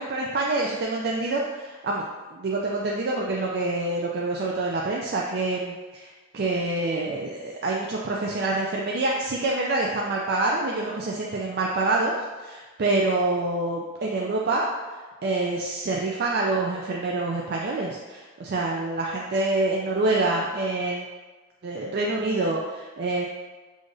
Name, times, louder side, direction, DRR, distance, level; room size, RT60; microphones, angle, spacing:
voice 1, 0.0-2.0 2.3-14.7 15.2-21.1 21.6-23.3, right 2 dB, 50° right, -3 dB, 0.4 m, -26 dB
6.3 x 2.5 x 2.6 m, 1.3 s
head